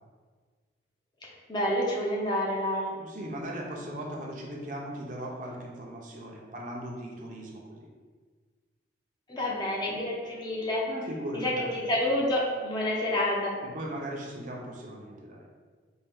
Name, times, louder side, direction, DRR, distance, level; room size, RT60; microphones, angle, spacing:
voice 1, 1.5-2.9 9.3-10.9 11.3-13.6, left 1 dB, 25° left, -4 dB, 0.6 m, -28 dB
voice 2, 3.0-7.9 10.8-11.7 13.6-15.4, right 1 dB, 45° right, -2 dB, 0.6 m, -38 dB
4.4 x 2.3 x 3.5 m, 1.5 s
head